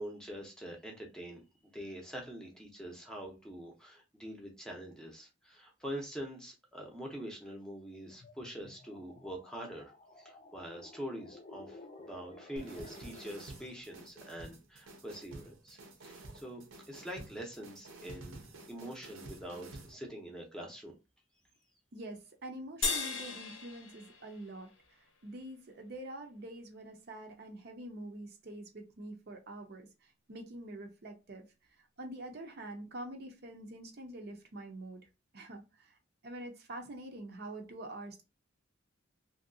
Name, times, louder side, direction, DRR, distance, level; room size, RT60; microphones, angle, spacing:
voice 1, 0.0-1.4 1.7-9.9 10.2-15.8 16.0-20.9, equal, 5° left, 0 dB, 0.7 m, -44 dB
sound 1, 8.1-13.9, left 2 dB, 35° left, 0.4 m, -54 dB
sound 2, 12.6-19.9, right 2 dB, 85° right, 0.8 m, -50 dB
voice 2, 21.9-24.7 25.2-29.9 30.3-31.5 32.0-35.0 35.3-36.0 36.2-38.2, right 1 dB, 50° right, 4 dB, 0.6 m, -45 dB
sound 3, 22.8-25.4, left 4 dB, 75° left, 0.7 m, -37 dB
2.8 x 2.7 x 2.6 m, 0.27 s
head